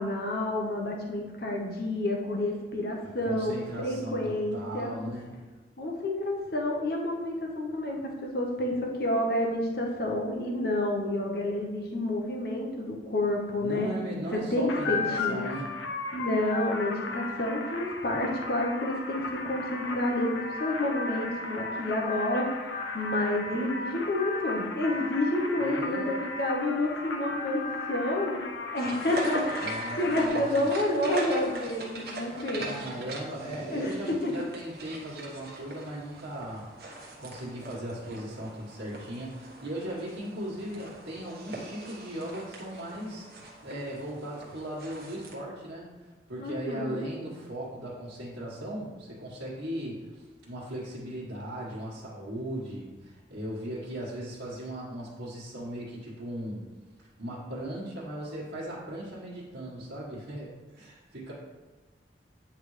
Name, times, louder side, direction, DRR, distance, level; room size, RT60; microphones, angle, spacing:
voice 1, 0.0-5.0 5.8-13.9 14.5-15.5 16.1-28.4 28.7-32.7 33.7-34.3 46.4-47.0, left 1 dB, 55° left, 0 dB, 0.8 m, -29 dB
voice 2, 3.2-5.3 13.6-15.7 25.6-26.1 29.6-30.7 32.6-36.7 37.2-56.7 57.2-61.3, right 1 dB, 85° right, -10 dB, 1.5 m, -38 dB
sound 1, 14.7-30.3, left 3 dB, 85° left, 0.7 m, -35 dB
sound 2, 28.8-45.3, right 2 dB, 55° right, 1.1 m, -41 dB
8.9 x 3.4 x 3.2 m, 1.3 s
head